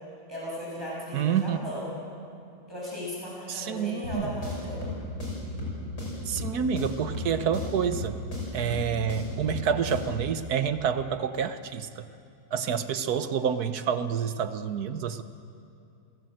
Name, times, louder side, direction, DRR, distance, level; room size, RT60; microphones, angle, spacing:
voice 1, 0.3-1.9 2.7-4.9, equal, 10° right, -6 dB, 6.9 m, -36 dB
voice 2, 1.1-1.6 3.5-4.3 6.2-8.2 8.5-12.1 12.5-15.2, right 7 dB, 60° right, 11 dB, 1.2 m, -28 dB
sound 1, 4.0-10.3, left 1 dB, 50° left, 6.9 m, -35 dB
29.5 x 17.5 x 7.7 m, 2.5 s
omnidirectional pair, 2.1 m